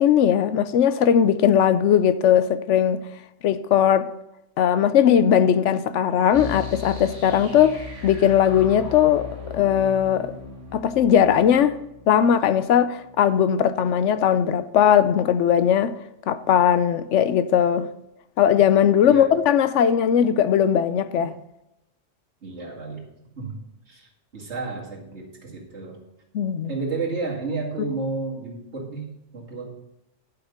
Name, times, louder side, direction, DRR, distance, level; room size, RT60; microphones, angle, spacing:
voice 1, 0.0-3.0 3.4-4.1 4.6-10.3 10.7-11.8 12.1-15.9 16.3-17.9 18.4-21.4 26.3-26.7 27.8-27.9, left 9 dB, 75° left, 0.9 m, -19 dB
sound 1, 6.3-13.1, left 5 dB, 20° right, 2.6 m, -38 dB
voice 2, 22.4-23.0 23.4-23.5 23.9-24.1 24.3-26.0 26.7-29.7, right 3 dB, 65° right, 2.5 m, -31 dB
11.5 x 5.8 x 5.3 m
omnidirectional pair, 1.3 m